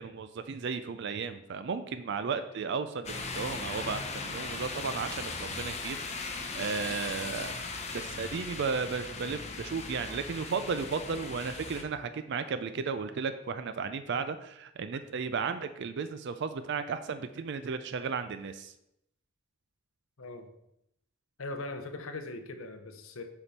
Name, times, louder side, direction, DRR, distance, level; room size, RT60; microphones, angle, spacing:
voice 1, 0.0-6.2 6.5-7.6 7.9-18.7, right 5 dB, 55° right, 10 dB, 0.4 m, -34 dB
sound 1, 3.0-11.8, left 3 dB, 30° left, 0.7 m, -38 dB
voice 2, 20.2-20.5 21.4-23.2, left 2 dB, 70° left, 7 dB, 0.8 m, -40 dB
7.2 x 5.2 x 4.2 m, 0.80 s
head